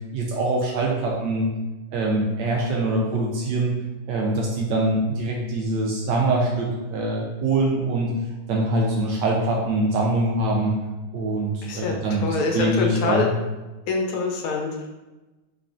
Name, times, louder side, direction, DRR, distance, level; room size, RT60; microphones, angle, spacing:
voice 1, 0.1-1.5 1.9-3.7 4.1-8.1 8.5-10.7 11.1-13.3, right 2 dB, 75° right, -1 dB, 1.1 m, -23 dB
voice 2, 11.6-13.3 13.9-14.9, left 4 dB, 80° left, 1 dB, 1.5 m, -25 dB
3.6 x 3.1 x 2.5 m, 1.1 s
omnidirectional pair, 2.3 m